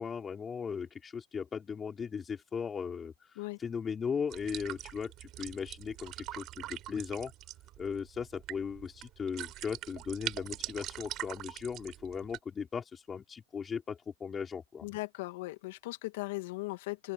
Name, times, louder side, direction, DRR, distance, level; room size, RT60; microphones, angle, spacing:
voice 1, 0.0-7.3 7.8-14.9, left 6 dB, 20° left, 5.1 m, -37 dB
sound 1, 4.3-12.4, right 15 dB, 40° right, 6.7 m, -43 dB
voice 2, 14.8-17.1, left 22 dB, 65° left, 2.3 m, -38 dB
open air
hypercardioid pair, 115°, 0 cm